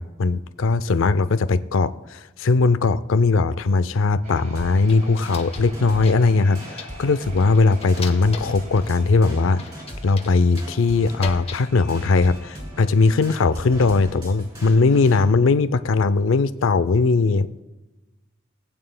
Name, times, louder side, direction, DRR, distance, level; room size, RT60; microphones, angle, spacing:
voice 1, 0.0-9.6 10.0-17.6, left 3 dB, 85° left, 13 dB, 0.5 m, -19 dB
sound 1, 4.2-15.7, right 1 dB, 45° right, 1.9 m, -48 dB
sound 2, 4.5-15.2, equal, 25° right, 3.8 m, -40 dB
sound 3, 4.6-5.7 6.0-7.0 7.4-8.9 9.6-11.7 12.0-12.5, left 4 dB, 30° left, 0.8 m, -39 dB
18.5 x 8.8 x 2.2 m, 1.1 s
head